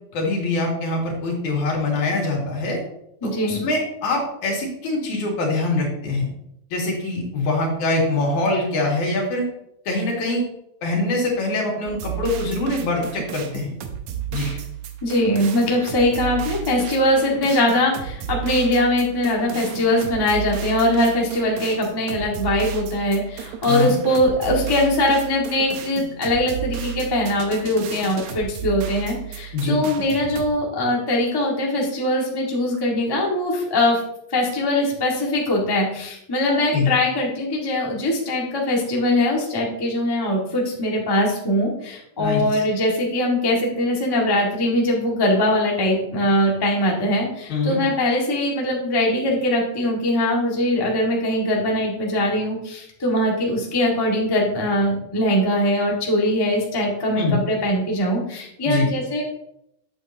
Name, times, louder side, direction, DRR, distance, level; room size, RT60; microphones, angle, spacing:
voice 1, 0.1-2.8 3.2-6.3 6.7-9.5 9.9-10.4 10.8-13.7 14.3-14.5 23.7-23.9 29.5-29.8 36.5-36.9 42.2-42.4 47.5-47.8 57.2-57.4 58.6-58.9, left 2 dB, 85° left, -2 dB, 3.4 m, -23 dB
voice 2, 3.2-3.6 14.4-14.6 15.0-34.0 34.3-59.3, left 1 dB, 15° left, -2 dB, 0.8 m, -21 dB
sound 1, 11.9-30.5, right 10 dB, 75° right, 2.1 m, -33 dB
8.1 x 7.6 x 2.7 m, 0.77 s
omnidirectional pair, 3.3 m